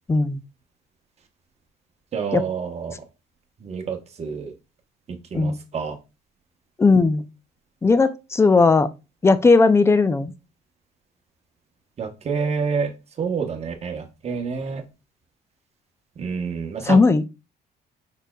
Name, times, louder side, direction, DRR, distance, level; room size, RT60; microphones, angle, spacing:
voice 1, 0.1-0.4 2.3-2.4 5.3-5.6 6.8-7.3 7.8-8.9 9.2-10.3 16.8-17.3, left 3 dB, 15° left, 0.4 m, -17 dB
voice 2, 2.1-2.9 3.6-4.5 5.1-6.0 12.0-14.8 16.2-17.0, right 5 dB, 40° right, 1.0 m, -28 dB
4.9 x 4.2 x 2.3 m
cardioid pair, 110°, 17 cm